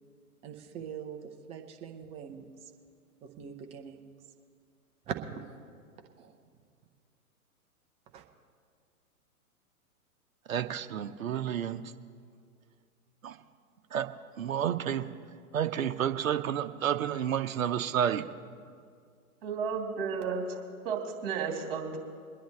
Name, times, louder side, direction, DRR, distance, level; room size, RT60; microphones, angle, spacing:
voice 1, 0.4-2.7 3.2-4.1 5.1-5.6 6.2-6.4 8.1-8.2, right 7 dB, 15° right, 4 dB, 0.6 m, -42 dB
voice 2, 10.5-11.8 13.2-13.4 13.9-14.1 14.4-15.0 15.5-18.2, right 9 dB, 65° right, 8 dB, 0.9 m, -30 dB
voice 3, 19.4-22.0, right 5 dB, 40° right, 1 dB, 2.7 m, -33 dB
23.5 x 10.0 x 3.3 m, 2.2 s
figure-of-eight pair, 120°, 44 cm